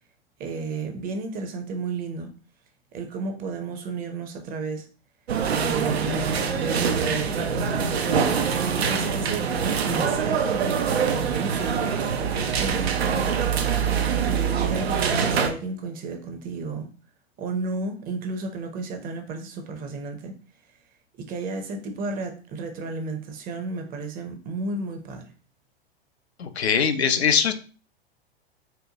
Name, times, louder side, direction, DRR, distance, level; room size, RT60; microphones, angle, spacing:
voice 1, 0.4-2.3 2.9-4.9 5.5-7.4 8.5-12.1 12.4-13.3 14.3-16.9 17.4-20.4 21.2-25.3, right 3 dB, 30° right, 5 dB, 0.7 m, -33 dB
sound 1, 5.3-15.5, right 6 dB, 80° right, 0.5 m, -24 dB
voice 2, 26.4-27.5, left 7 dB, 85° left, 8 dB, 0.5 m, -21 dB
4.3 x 2.2 x 2.8 m, 0.37 s
figure-of-eight pair, 100°, 31 cm